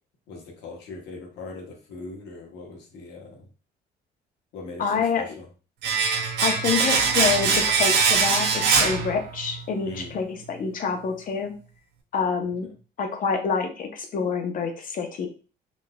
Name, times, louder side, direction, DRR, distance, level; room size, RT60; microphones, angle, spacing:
voice 1, 0.3-3.5 4.5-5.5 9.8-10.2 12.6-12.7, left 3 dB, 85° left, 1 dB, 1.0 m, -40 dB
voice 2, 4.8-5.2 6.4-11.5 12.1-12.7 13.0-15.3, left 5 dB, 50° left, 5 dB, 0.7 m, -27 dB
Domestic sounds home sounds, 5.8-9.6 9.9-10.0, right 5 dB, 70° right, 0.6 m, -22 dB
3.9 x 2.4 x 2.2 m, 0.36 s
cardioid pair, 110°, 18 cm